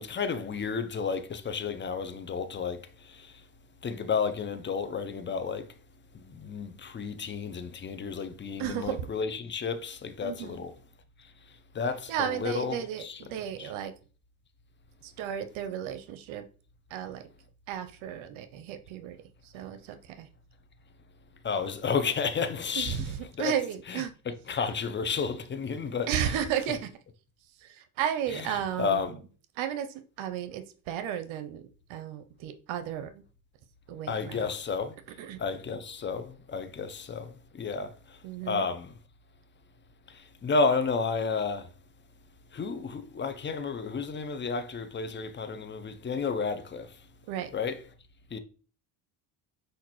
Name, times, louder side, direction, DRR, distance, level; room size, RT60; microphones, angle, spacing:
voice 1, 0.0-3.4 3.8-5.7 6.1-10.7 11.7-13.2 13.6-13.7 21.4-23.0 23.4-23.5 23.9-26.1 28.8-29.2 34.1-34.9 35.4-38.9 40.1-41.7 42.5-47.0 47.5-47.8 48.3-48.4, left 5 dB, 25° left, 0.6 m, -32 dB
voice 2, 8.6-9.1 10.2-10.7 12.1-13.9 15.0-16.4 16.9-17.2 17.7-19.2 19.4-20.3 22.8-24.1 26.1-26.9 27.6-29.2 29.6-29.9 30.2-33.2 33.9-34.5 35.2-35.4 38.2-38.7 47.3-47.5, right 9 dB, 70° right, 0.7 m, -34 dB
5.8 x 2.6 x 3.0 m
supercardioid pair, 75°, 49 cm